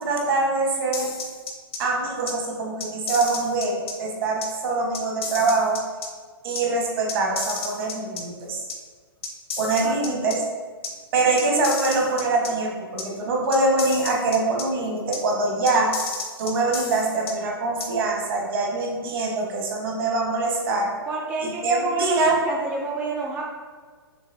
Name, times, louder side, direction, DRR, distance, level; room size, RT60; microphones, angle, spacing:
voice 1, 0.0-1.1 1.8-5.8 6.4-8.6 9.6-10.4 11.1-15.9 16.4-20.9 21.4-22.4, right 3 dB, 60° right, -1 dB, 1.4 m, -24 dB
sound 1, 0.9-1.8 2.3-2.4 2.8-3.9 4.4-4.5 4.9-6.1 6.6-6.7 7.1-8.2 8.7-8.8 9.2-10.4 10.8-10.9 11.4-12.5 13.0-13.1 13.5-14.6 15.1-15.2 15.7-17.3 17.8-17.9, left 4 dB, 75° left, 0.8 m, -32 dB
voice 2, 21.1-23.5, right 3 dB, 10° right, -1 dB, 0.4 m, -28 dB
6.3 x 3.1 x 2.7 m, 1.5 s
hypercardioid pair, 135°, 13 cm